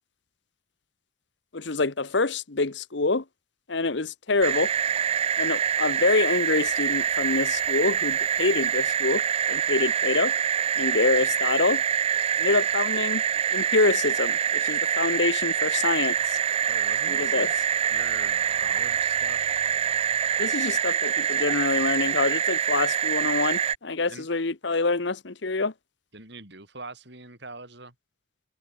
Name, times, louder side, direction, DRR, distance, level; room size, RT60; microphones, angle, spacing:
voice 1, 1.5-3.2 3.7-4.7 5.4-9.2 9.5-10.3 10.8-11.8 12.4-13.2 13.5-16.4 17.1-17.5 20.4-25.7, left 3 dB, 60° left, 1.0 m, -26 dB
sound 1, 4.4-23.7, right 8 dB, 30° right, 0.3 m, -25 dB
voice 2, 16.7-17.5 17.9-19.5 24.1-24.3 26.1-27.9, right 3 dB, 55° right, 5.3 m, -42 dB
head